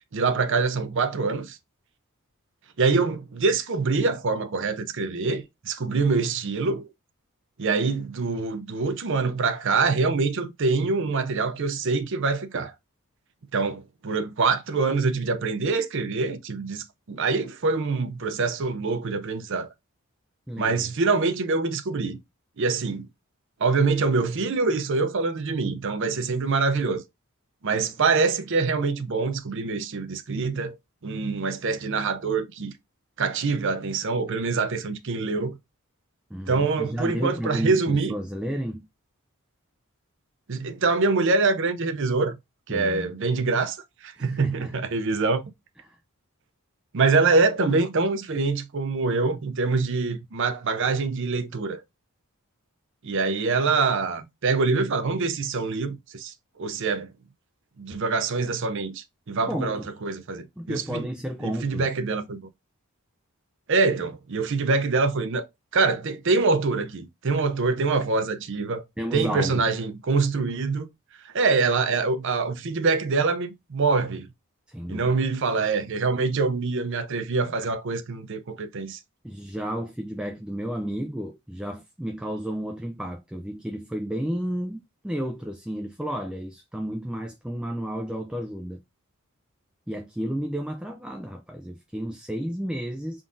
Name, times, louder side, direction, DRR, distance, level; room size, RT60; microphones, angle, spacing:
voice 1, 0.1-1.6 2.8-6.9 7.6-12.7 13.5-19.7 20.6-22.2 22.6-23.1 23.6-27.0 27.6-30.8 31.0-32.7 33.2-35.6 36.5-38.1 40.5-42.4 42.7-43.8 44.0-45.5 46.9-51.8 53.0-57.1 57.8-61.0 61.4-62.4 63.7-65.5 65.7-68.8 69.1-70.9 71.3-74.3 74.9-79.0, right 4 dB, 55° right, 0.6 m, -25 dB
voice 2, 20.5-20.9 36.3-38.9 42.7-43.1 44.2-44.7 45.8-46.0 59.5-59.9 60.6-61.9 69.0-69.6 74.7-75.0 79.2-88.8 89.9-93.2, equal, 5° right, 0.4 m, -32 dB
3.8 x 3.6 x 2.5 m
head